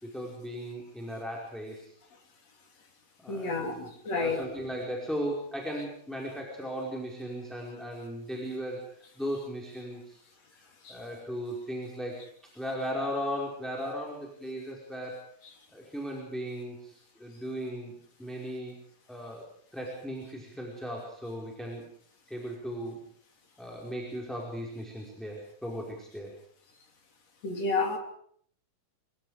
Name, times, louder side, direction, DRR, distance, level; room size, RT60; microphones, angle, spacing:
voice 1, 0.0-1.9 3.2-10.2 10.6-12.2 12.5-15.2 15.7-17.9 18.2-18.8 19.1-19.4 19.7-21.8 22.3-23.0 23.6-26.3, equal, ahead, -2 dB, 4.8 m, -37 dB
voice 2, 3.3-4.4 10.8-11.0 27.4-28.0, left 3 dB, 50° left, 3 dB, 4.4 m, -30 dB
26.5 x 24.0 x 5.1 m, 0.63 s
omnidirectional pair, 3.8 m